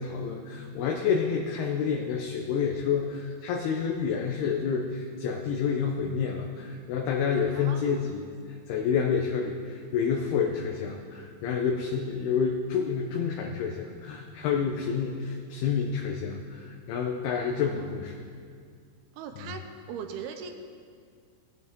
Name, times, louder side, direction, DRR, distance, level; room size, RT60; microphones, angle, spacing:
voice 1, 0.0-18.1, left 6 dB, 80° left, 0 dB, 2.7 m, -29 dB
voice 2, 7.6-8.3 17.6-18.2 19.1-19.6 19.9-20.5, right 7 dB, 80° right, 6 dB, 2.6 m, -40 dB
18.5 x 8.2 x 3.7 m, 2.2 s
omnidirectional pair, 4.7 m